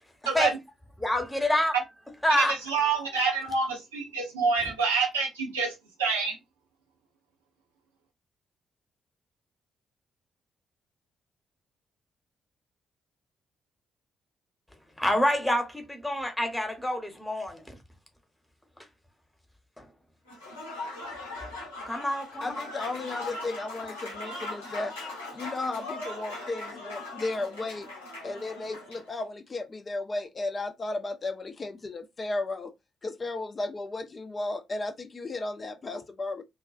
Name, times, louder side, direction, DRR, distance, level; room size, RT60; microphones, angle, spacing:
voice 1, 1.0-1.8 2.2-2.6 4.6-4.7 15.0-17.8 19.8-19.9 21.9-22.7, left 1 dB, 10° left, 0.8 m, -27 dB
voice 2, 2.4-5.7 6.0-6.4, right 4 dB, 80° right, 0.6 m, -27 dB
Applause / Crowd, 20.3-29.1, left 2 dB, 80° left, 0.6 m, -40 dB
voice 3, 22.4-25.0 25.3-27.9 28.2-32.7 33.0-36.4, left 2 dB, 35° left, 0.4 m, -34 dB
2.4 x 2.2 x 2.4 m
figure-of-eight pair, 40°, 0 cm